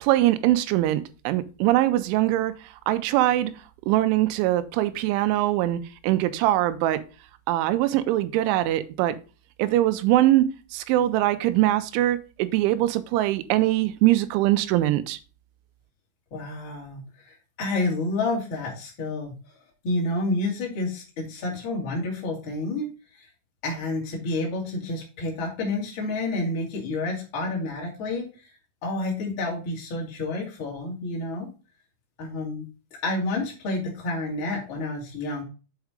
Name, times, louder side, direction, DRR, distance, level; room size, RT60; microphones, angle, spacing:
voice 1, 0.0-2.5 2.9-3.5 3.9-7.0 7.5-9.2 9.6-10.5 10.7-15.2, right 15 dB, 90° right, 3.1 m, -22 dB
voice 2, 16.3-19.3 19.8-22.9 23.1-23.3 23.6-28.3 28.8-31.5 32.2-32.6 32.9-35.4, left 2 dB, 35° left, 2.4 m, -29 dB
7.3 x 4.7 x 4.9 m
omnidirectional pair, 5.3 m